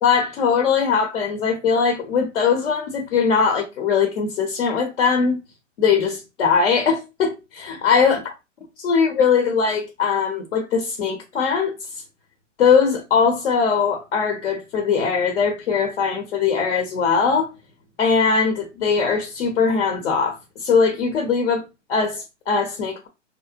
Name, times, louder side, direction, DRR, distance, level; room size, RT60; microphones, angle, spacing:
voice 1, 0.0-5.4 5.8-8.2 8.8-11.7 12.6-17.5 18.0-23.1, left 5 dB, 65° left, 0.7 m, -20 dB
2.7 x 2.0 x 2.4 m
hypercardioid pair, 125°, 37 cm